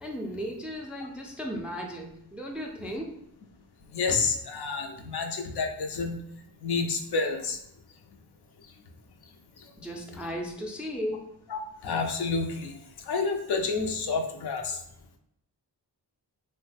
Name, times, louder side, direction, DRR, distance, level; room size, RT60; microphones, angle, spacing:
voice 1, 0.0-3.2 9.8-11.3, equal, 5° right, 1 dB, 0.3 m, -35 dB
voice 2, 3.9-6.2 6.6-7.6 11.5-12.8 13.1-14.8, left 4 dB, 65° left, 3 dB, 0.5 m, -29 dB
3.0 x 2.1 x 3.3 m, 0.75 s
wide cardioid pair, 70°, 43 cm